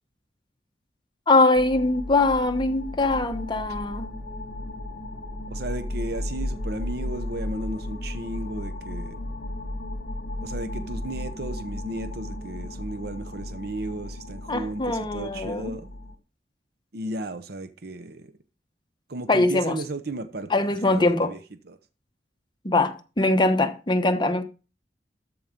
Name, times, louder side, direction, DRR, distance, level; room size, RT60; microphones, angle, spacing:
voice 1, 1.3-4.1 14.5-15.7 19.3-19.8 20.5-21.3 22.6-24.4, left 2 dB, 25° left, 1.1 m, -22 dB
sound 1, 1.5-16.2, left 1 dB, 60° left, 1.6 m, -35 dB
voice 2, 5.5-9.2 10.4-15.9 16.9-18.3 19.1-21.4 21.7-21.8, right 2 dB, 60° right, 0.9 m, -34 dB
13.0 x 4.8 x 5.2 m
head